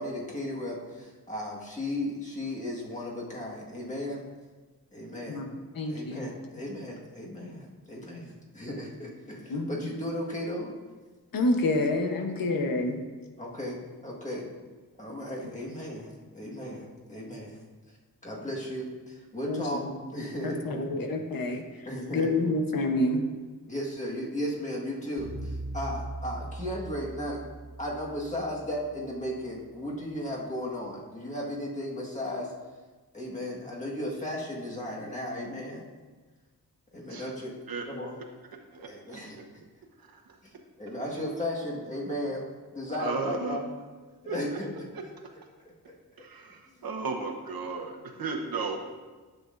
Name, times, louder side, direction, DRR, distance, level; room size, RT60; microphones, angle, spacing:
voice 1, 0.0-4.2 4.9-5.4 5.9-10.7 12.1-12.4 13.4-14.5 15.0-17.6 18.2-21.0 21.8-22.5 23.7-27.4 27.8-32.5 33.1-35.9 36.9-37.5 37.9-38.1 38.8-39.4 40.4-40.5 40.8-43.7 44.2-44.7 48.4-48.5, left 1 dB, 20° left, -4 dB, 1.5 m, -35 dB
voice 2, 5.3-6.3 9.5-9.9 11.3-13.0 19.5-20.0 20.4-21.6 22.1-23.2, left 2 dB, 80° left, 4 dB, 0.9 m, -28 dB
sound 1, 25.2-29.5, right 2 dB, 20° right, 2.1 m, -40 dB
voice 3, 38.7-39.2 40.0-40.4 43.0-43.6 44.2-44.6 44.9-45.0 46.2-48.8, right 4 dB, 85° right, 2 dB, 1.1 m, -35 dB
10.5 x 7.7 x 2.5 m, 1.3 s
wide cardioid pair, 170°, 34 cm